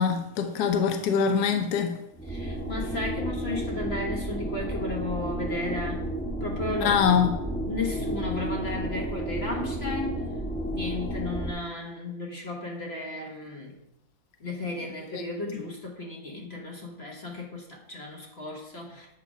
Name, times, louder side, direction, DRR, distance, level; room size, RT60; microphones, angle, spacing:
voice 1, 0.0-2.0 6.8-7.3, left 7 dB, 65° left, 1.2 m, -23 dB
sound 1, 2.1-11.5, right 1 dB, 5° left, 0.7 m, -32 dB
voice 2, 2.2-6.1 6.4-7.1 7.6-10.2 10.7-13.8 14.4-19.1, left 2 dB, 40° left, 1.2 m, -34 dB
8.3 x 4.5 x 5.0 m
omnidirectional pair, 2.0 m